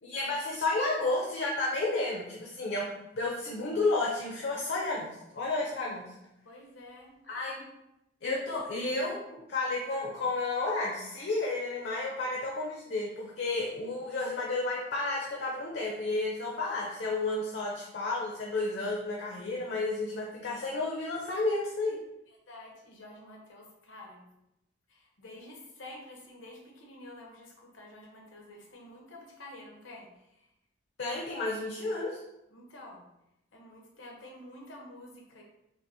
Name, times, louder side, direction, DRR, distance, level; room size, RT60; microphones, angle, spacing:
voice 1, 0.0-2.9 3.1-6.0 7.3-7.7 8.2-22.0 31.0-32.2, left 2 dB, 65° left, -3 dB, 0.6 m, -32 dB
voice 2, 6.4-7.1 22.5-24.3 24.9-30.1 30.4-30.5 32.5-33.0 33.5-35.4, left 1 dB, 90° left, 0 dB, 0.9 m, -49 dB
5.3 x 2.0 x 2.7 m, 0.86 s
head